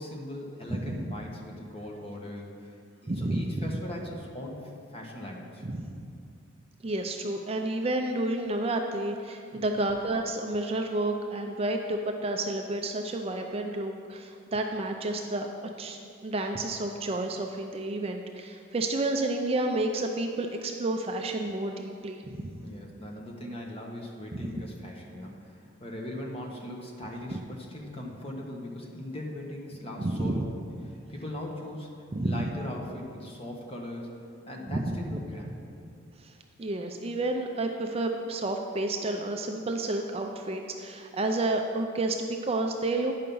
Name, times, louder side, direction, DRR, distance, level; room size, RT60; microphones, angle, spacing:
voice 1, 0.0-2.8 3.0-5.7 9.5-9.8 22.6-30.5 31.1-31.9 32.2-34.1 34.4-35.5, left 1 dB, 30° left, 0 dB, 1.1 m, -39 dB
voice 2, 0.8-1.1 3.1-3.6 5.6-6.0 6.8-15.5 15.8-22.6 24.3-24.5 30.0-30.4 32.1-32.5 34.7-35.0 36.2-36.3 36.6-43.1, right 2 dB, 30° right, 4 dB, 0.4 m, -30 dB
9.6 x 5.7 x 5.4 m, 2.4 s
head